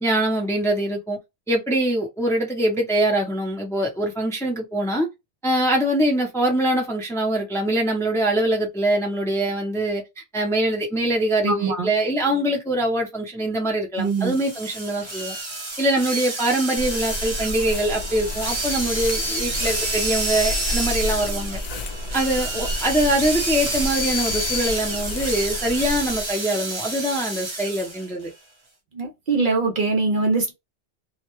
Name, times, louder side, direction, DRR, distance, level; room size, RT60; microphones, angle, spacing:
voice 1, 0.0-1.2 1.5-5.1 5.4-15.4 15.8-21.6 22.1-28.3, right 1 dB, 5° left, 0.5 m, -23 dB
voice 2, 11.4-11.9 14.0-14.4 28.9-30.5, right 3 dB, 60° right, 0.6 m, -22 dB
sound 1, 14.1-28.1, right 1 dB, 30° right, 0.8 m, -29 dB
sound 2, 16.8-26.3, left 1 dB, 55° left, 0.5 m, -31 dB
2.2 x 2.1 x 2.9 m
omnidirectional pair, 1.1 m